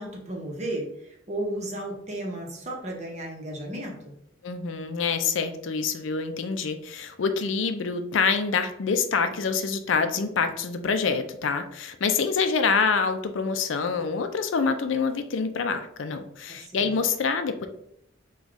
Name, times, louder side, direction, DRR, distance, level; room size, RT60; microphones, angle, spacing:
voice 1, 0.0-4.1 16.5-16.9, right 1 dB, 35° right, 0 dB, 1.0 m, -34 dB
voice 2, 4.4-17.7, left 5 dB, 70° left, 8 dB, 0.5 m, -26 dB
4.0 x 2.3 x 4.6 m, 0.72 s
head